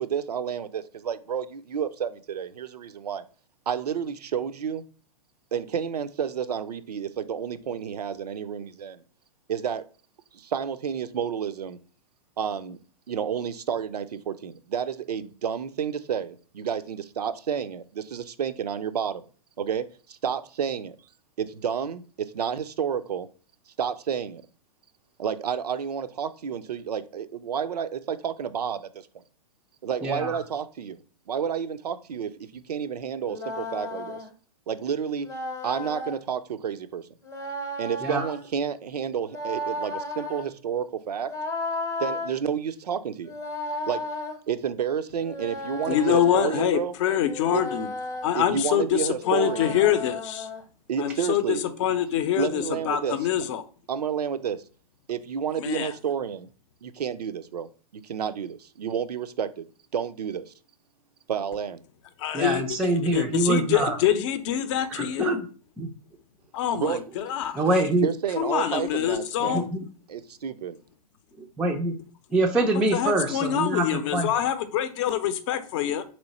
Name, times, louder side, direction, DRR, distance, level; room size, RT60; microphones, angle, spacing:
voice 1, 0.0-3.2 3.7-4.8 5.5-9.0 9.5-9.8 10.3-11.8 12.4-12.8 13.1-19.2 19.6-21.0 21.4-23.3 23.7-24.4 25.2-29.2 29.8-34.2 34.7-35.3 35.6-37.1 37.8-41.3 42.0-43.3 43.9-44.0 44.5-46.9 47.5-47.6 48.3-49.8 50.9-51.6 52.3-53.2 53.9-54.6 55.1-56.5 56.8-57.7 57.9-59.7 59.9-60.5 61.3-61.8 66.7-67.0 68.0-69.7 70.1-70.8, right 7 dB, 85° right, 0.5 m, -30 dB
voice 2, 30.0-30.4 38.0-38.3 62.3-64.0 64.9-65.5 65.8-65.9 67.5-68.1 69.5-69.8 71.4-71.9 72.3-74.3, right 2 dB, 5° right, 0.3 m, -25 dB
sound 1, 33.2-34.3 35.2-36.2 37.2-38.5 39.2-40.5 41.2-42.3 43.2-44.4 45.2-46.6 47.2-48.3 49.2-50.6, left 2 dB, 15° left, 0.8 m, -34 dB
voice 3, 45.9-47.9 48.2-50.5 51.0-53.6 55.6-55.9 62.2-62.6 63.1-65.3 66.5-67.6 68.4-69.6 72.9-76.0, left 10 dB, 50° left, 0.6 m, -25 dB
3.1 x 3.1 x 4.0 m
hypercardioid pair, 120°, 20 cm